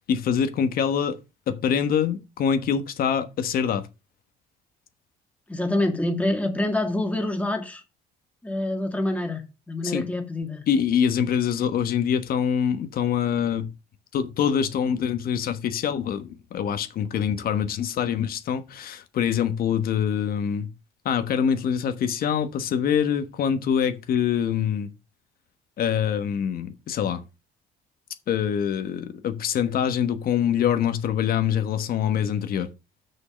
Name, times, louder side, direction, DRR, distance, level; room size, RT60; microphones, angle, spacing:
voice 1, 0.1-1.2 1.5-3.9 9.8-10.0 10.7-13.7 14.1-20.7 21.0-24.9 25.8-27.2 28.3-32.7, left 8 dB, 60° left, 1.2 m, -24 dB
voice 2, 5.5-7.8 8.4-10.6, left 1 dB, 10° left, 2.2 m, -26 dB
6.4 x 5.5 x 6.3 m
cardioid pair, 110°, 17 cm